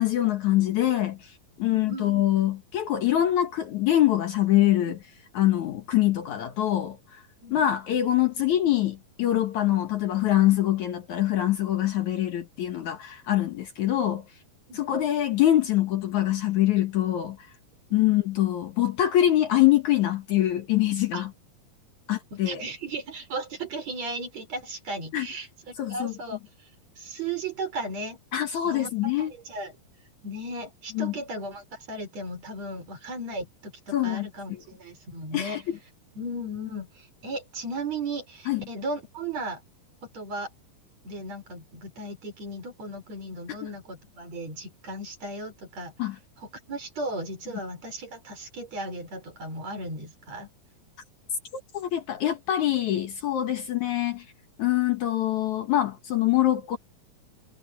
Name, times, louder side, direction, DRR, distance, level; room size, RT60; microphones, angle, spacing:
voice 1, 0.0-5.0 5.4-7.2 7.5-14.2 14.7-17.4 17.9-21.3 22.1-22.6 25.1-25.3 25.8-26.1 28.3-29.3 30.9-31.1 33.9-34.6 35.3-35.8 38.5-38.6 46.0-46.2 51.7-54.3 54.6-56.8, left 13 dB, 60° left, 2.5 m, -24 dB
voice 2, 1.6-2.1 4.9-5.0 7.4-7.6 14.7-14.8 17.9-18.1 21.1-21.3 22.3-26.7 27.0-28.2 28.6-29.7 30.2-35.6 36.2-39.6 40.1-40.5 41.0-45.9 46.4-50.5, right 2 dB, 50° right, 5.7 m, -36 dB
omnidirectional pair, 4.1 m